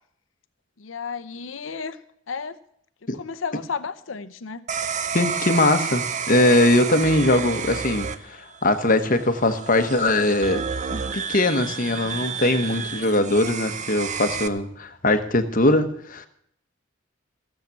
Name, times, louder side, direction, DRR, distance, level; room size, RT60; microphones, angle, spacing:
voice 1, 0.8-2.0 2.3-2.6 3.1-4.6, left 5 dB, 85° left, 12 dB, 0.7 m, -32 dB
sound 1, 4.7-14.5, right 6 dB, 40° right, 0.7 m, -30 dB
voice 2, 5.1-8.4 8.6-10.6 10.9-16.3, left 1 dB, 45° left, 9 dB, 1.2 m, -21 dB
16.0 x 7.5 x 8.3 m, 0.69 s
head